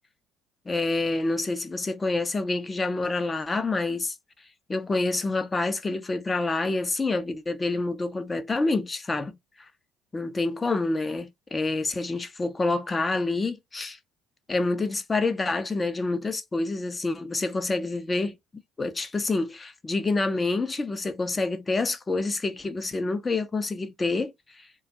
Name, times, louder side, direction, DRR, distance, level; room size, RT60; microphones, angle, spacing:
voice 1, 0.7-4.1 4.7-9.7 10.1-14.0 14.5-18.4 18.8-24.7, left 3 dB, 25° left, 0.6 m, -27 dB
2.4 x 2.3 x 2.8 m
hypercardioid pair, 60°, 0 cm